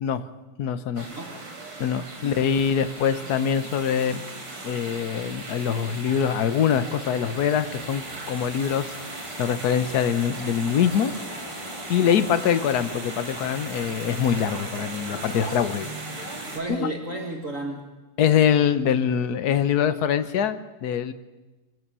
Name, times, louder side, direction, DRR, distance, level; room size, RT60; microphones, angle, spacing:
voice 1, 0.6-1.1 1.8-4.2 4.6-8.9 9.4-11.1 11.9-15.9 16.1-16.4 16.7-16.9 18.2-21.1, left 8 dB, 55° left, 12 dB, 1.3 m, -24 dB
sound 1, 1.0-16.6, right 2 dB, 85° right, 5.0 m, -37 dB
voice 2, 1.1-1.4 2.2-2.4 12.0-12.3 16.5-17.9, right 2 dB, 40° right, 2 dB, 2.0 m, -33 dB
sound 2, 7.2-16.9, left 1 dB, 15° left, 2.4 m, -45 dB
24.5 x 16.0 x 6.9 m, 1.2 s
omnidirectional pair, 2.4 m